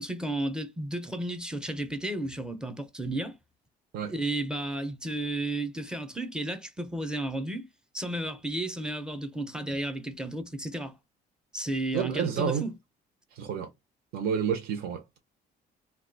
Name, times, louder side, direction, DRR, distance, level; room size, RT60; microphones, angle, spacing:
voice 1, 0.0-3.4 4.1-11.0 11.5-12.7, right 1 dB, 5° right, 0.6 m, -33 dB
voice 2, 11.9-12.6 13.4-13.7 14.1-15.2, right 7 dB, 65° right, 0.7 m, -29 dB
2.5 x 2.3 x 3.8 m
cardioid pair, 110°, 17 cm